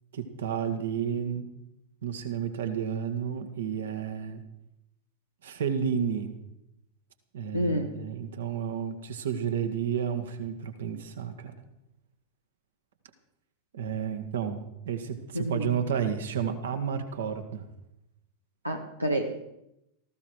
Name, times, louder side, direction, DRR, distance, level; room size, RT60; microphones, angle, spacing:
voice 1, 0.1-1.5 2.0-4.4 5.4-6.3 7.3-11.5 13.7-17.6, right 7 dB, 60° right, 8 dB, 1.8 m, -31 dB
voice 2, 7.5-7.9 15.3-15.7 18.6-19.5, equal, 85° right, 4 dB, 1.3 m, -29 dB
18.0 x 15.0 x 4.6 m, 0.86 s
figure-of-eight pair, 90°, 0 cm